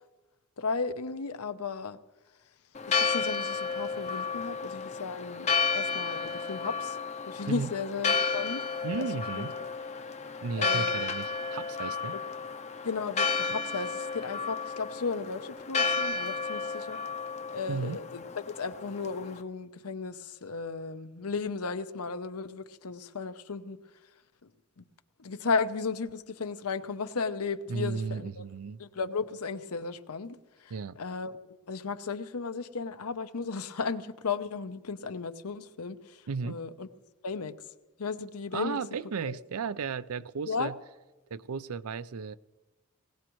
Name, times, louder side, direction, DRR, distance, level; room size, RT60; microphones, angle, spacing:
voice 1, 0.6-2.0 2.9-7.0 7.3-8.6 9.0-9.1 9.4-9.7 10.6-11.1 12.8-17.0 17.5-23.8 24.8-24.9 25.2-28.4 28.8-31.3 31.7-36.9 37.2-37.5 38.0-38.8 39.2-39.4 40.5-40.7, left 4 dB, 85° left, 0.8 m, -35 dB
Church bell, 2.8-19.4, left 5 dB, 30° left, 0.6 m, -32 dB
voice 2, 8.8-9.5 10.4-12.2 17.7-18.0 27.7-28.8 30.7-31.0 36.3-36.6 38.5-40.7 41.3-42.4, right 5 dB, 75° right, 0.5 m, -34 dB
20.0 x 18.5 x 3.1 m
head